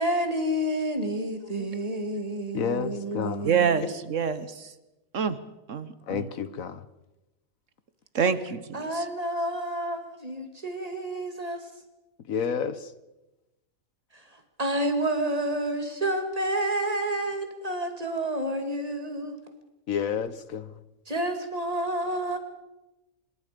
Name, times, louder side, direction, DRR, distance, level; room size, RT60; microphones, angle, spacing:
voice 1, 0.0-3.8 8.7-11.7 14.3-19.4 21.1-22.4, right 1 dB, 25° right, 2.4 m, -29 dB
voice 2, 2.5-3.5 6.1-6.8 12.3-12.9 19.9-20.7, left 7 dB, 75° left, 1.4 m, -30 dB
voice 3, 3.4-4.7 5.1-5.4 5.7-6.2 8.1-9.0, right 7 dB, 65° right, 1.4 m, -27 dB
25.5 x 22.0 x 5.2 m
omnidirectional pair, 1.4 m